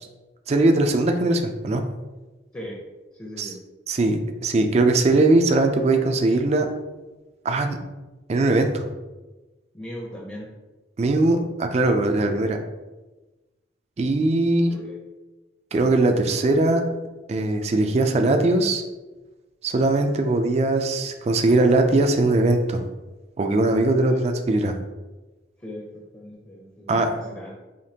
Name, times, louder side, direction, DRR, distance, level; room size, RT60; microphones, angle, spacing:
voice 1, 0.5-1.8 3.4-3.5 3.9-6.7 7.4-7.8 8.3-8.9 11.0-12.6 14.0-14.7 15.7-16.8 17.3-18.8 19.6-22.8 23.4-24.8 26.9-27.1, right 2 dB, 35° right, 5 dB, 0.3 m, -20 dB
voice 2, 3.1-3.6 9.7-10.5 14.7-15.0 24.0-24.2 25.6-27.5, equal, 15° left, -3 dB, 0.6 m, -38 dB
5.0 x 2.9 x 2.8 m, 1.2 s
head